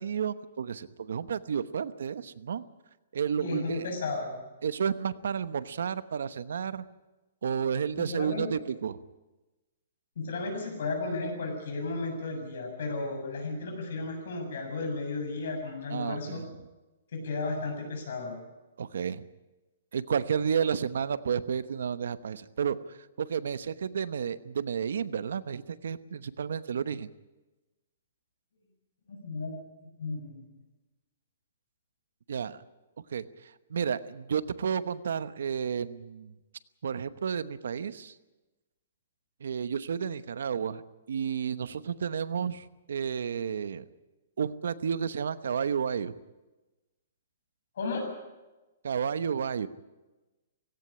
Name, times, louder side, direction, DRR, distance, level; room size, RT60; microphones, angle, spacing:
voice 1, 0.0-2.6 3.1-3.8 4.6-6.8 7.4-9.0 15.9-16.4 18.8-19.3 19.9-27.1 32.3-32.6 33.1-36.3 36.8-38.1 39.4-40.8 41.1-43.8 44.4-46.1 48.8-49.7, right 7 dB, 75° right, 14 dB, 1.0 m, -31 dB
voice 2, 3.4-4.4 7.9-8.6 10.2-16.4 17.1-18.4 29.1-29.5 29.8-30.4 47.8-48.1, left 3 dB, 60° left, 3 dB, 7.2 m, -34 dB
17.5 x 17.0 x 10.0 m, 1.1 s
hypercardioid pair, 175°, 0 cm